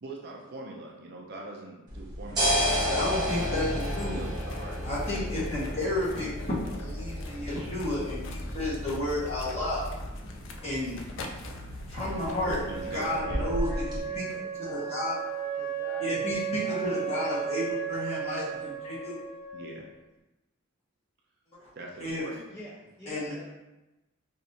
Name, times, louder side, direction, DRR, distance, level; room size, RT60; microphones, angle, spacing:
voice 1, 0.0-3.1 3.7-4.8 5.6-5.8 12.5-13.6 19.5-19.9 21.7-22.5, right 2 dB, 50° right, -1 dB, 0.5 m, -42 dB
sound 1, 1.9-14.0, equal, 20° right, 1.0 m, -33 dB
sound 2, 2.6-13.2, left 2 dB, 60° left, 0.4 m, -45 dB
voice 2, 2.9-4.2 4.8-9.8 10.6-11.0 11.9-12.6 12.9-14.3 14.6-15.2 16.0-19.2 21.6-21.7 22.0-22.2 23.1-23.4, left 1 dB, 30° left, -9 dB, 1.3 m, -32 dB
Wind instrument woodwind instrument, 12.1-19.8, right 8 dB, 90° right, 0.9 m, -35 dB
voice 3, 12.6-14.9 15.6-16.0 16.6-17.9 22.5-23.4, equal, 10° left, -9 dB, 0.6 m, -47 dB
4.5 x 2.6 x 2.7 m, 1.0 s
head